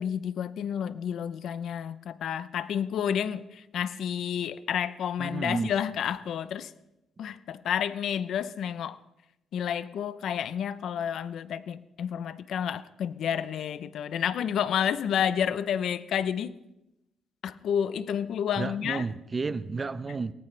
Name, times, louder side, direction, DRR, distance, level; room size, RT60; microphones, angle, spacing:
voice 1, 0.0-6.7 7.2-9.0 9.5-16.5 17.4-19.0, left 8 dB, 70° left, 14 dB, 0.8 m, -30 dB
voice 2, 5.2-5.7 18.6-20.3, right 4 dB, 30° right, 13 dB, 0.8 m, -32 dB
23.0 x 18.0 x 3.4 m, 0.88 s
cardioid pair, 90°, 0 cm